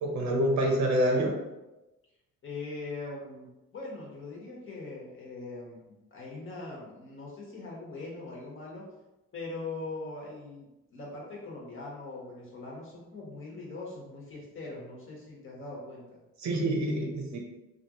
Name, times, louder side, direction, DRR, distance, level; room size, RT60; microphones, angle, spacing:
voice 1, 0.0-1.3 16.4-17.4, right 1 dB, 65° right, 1 dB, 0.8 m, -26 dB
voice 2, 2.4-3.5 3.7-8.8 9.3-16.2, left 3 dB, 45° left, -4 dB, 1.2 m, -41 dB
3.1 x 2.5 x 2.9 m, 1.0 s
cardioid pair, 90°, 30 cm